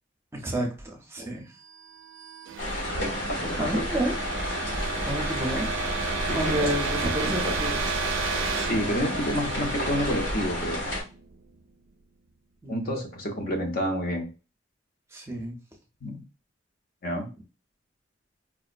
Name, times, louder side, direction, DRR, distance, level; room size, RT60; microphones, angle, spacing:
voice 1, 0.3-1.4 3.6-4.1 4.7-4.8 5.1-5.7 6.3-7.9 12.6-13.0 15.1-15.6, right 1 dB, 15° right, 1 dB, 0.6 m, -30 dB
sound 1, 1.8-11.5, right 5 dB, 85° right, 0.4 m, -33 dB
sound 2, 2.6-11.0, left 1 dB, 90° left, 1.4 m, -31 dB
voice 2, 3.0-3.8 6.3-6.7 8.5-10.8 12.7-14.3 16.0-16.2 17.0-17.3, equal, 55° left, 3 dB, 0.7 m, -29 dB
4.6 x 2.0 x 2.5 m, 0.31 s
head